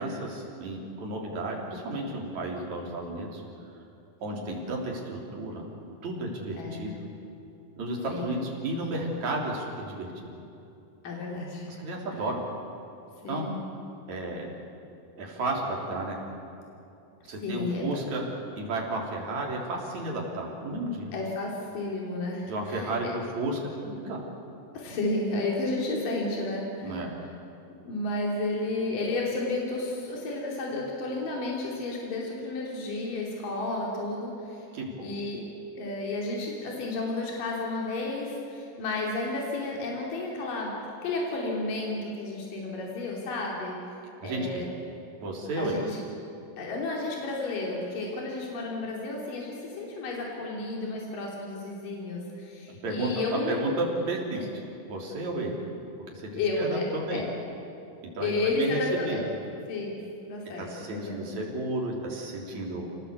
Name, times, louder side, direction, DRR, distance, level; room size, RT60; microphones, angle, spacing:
voice 1, 0.0-3.4 4.2-5.6 6.0-7.0 7.7-10.3 11.8-12.4 13.3-13.5 14.1-14.5 15.2-16.2 17.3-18.2 18.5-21.1 22.5-23.7 24.0-24.2 26.8-27.2 34.7-35.1 44.2-44.6 45.2-45.8 52.7-54.5 54.9-55.6 56.1-57.3 58.0-59.2 60.6-62.9, right 2 dB, 55° right, -1 dB, 4.7 m, -32 dB
voice 2, 6.6-6.9 8.1-8.4 11.0-11.8 13.2-13.5 17.4-17.9 21.1-22.9 24.7-27.0 27.9-34.7 35.0-35.5 35.8-40.7 41.0-43.8 44.2-44.6 45.6-46.0 46.6-53.6 54.3-54.4 56.3-57.3 58.2-59.3 59.7-60.0 60.2-61.3, left 2 dB, 70° left, -2 dB, 4.6 m, -32 dB
26.0 x 18.5 x 8.3 m, 2.7 s
omnidirectional pair, 4.0 m